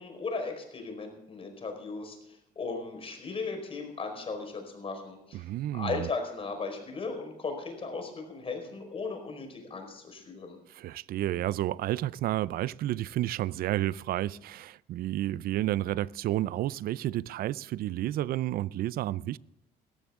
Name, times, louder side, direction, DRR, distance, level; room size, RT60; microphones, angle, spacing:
voice 1, 0.0-5.4 5.7-10.6, left 4 dB, 35° left, 4.7 m, -37 dB
voice 2, 5.3-6.1 10.7-19.4, right 14 dB, 60° right, 0.4 m, -31 dB
18.5 x 14.0 x 3.7 m
cardioid pair, 110°, 17 cm